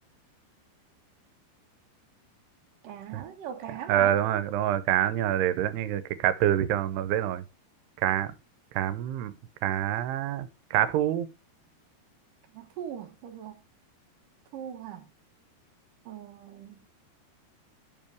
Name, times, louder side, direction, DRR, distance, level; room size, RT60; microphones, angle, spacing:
voice 1, 2.8-4.2 12.5-13.6 14.5-15.1 16.1-16.8, right 9 dB, 65° right, 2.4 m, -40 dB
voice 2, 3.9-7.4 8.0-8.3 8.8-9.3 9.6-11.3, right 11 dB, 90° right, 2.8 m, -26 dB
12.5 x 5.5 x 3.3 m
omnidirectional pair, 4.7 m